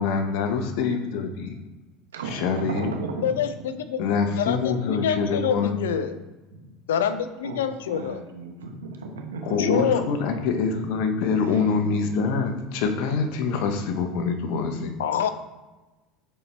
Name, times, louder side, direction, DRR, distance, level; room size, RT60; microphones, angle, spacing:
voice 1, 0.0-1.5 2.3-2.9 4.0-5.7 9.4-14.9, left 5 dB, 65° left, 6 dB, 0.9 m, -25 dB
voice 2, 2.1-3.3 6.5-6.7 7.4-7.6 7.9-9.7 11.4-11.6, right 4 dB, 90° right, 3 dB, 1.0 m, -35 dB
voice 3, 3.2-6.2 6.9-8.2 9.6-10.1 15.0-15.3, left 8 dB, 80° left, 11 dB, 0.5 m, -26 dB
6.8 x 4.4 x 3.4 m, 1.1 s
hypercardioid pair, 80°, 0 cm